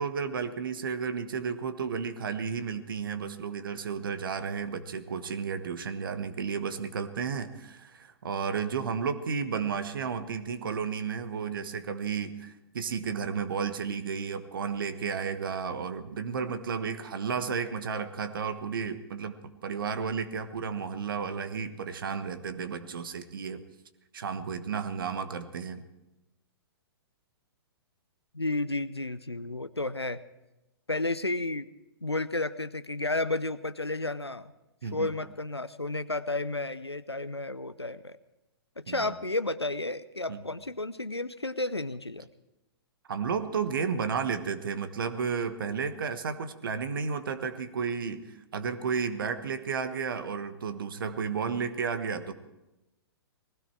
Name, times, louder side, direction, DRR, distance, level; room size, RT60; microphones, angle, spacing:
voice 1, 0.0-19.3 19.6-23.7 24.1-25.8 34.8-35.1 38.9-39.1 40.3-40.4 43.1-48.3 48.5-52.3, right 6 dB, 55° right, 10 dB, 1.3 m, -32 dB
voice 2, 28.3-30.2 30.9-31.7 32.0-34.5 34.9-38.2 38.8-42.3, left 2 dB, 90° left, 13 dB, 0.6 m, -32 dB
19.0 x 16.5 x 4.6 m, 0.98 s
figure-of-eight pair, 115°, 13 cm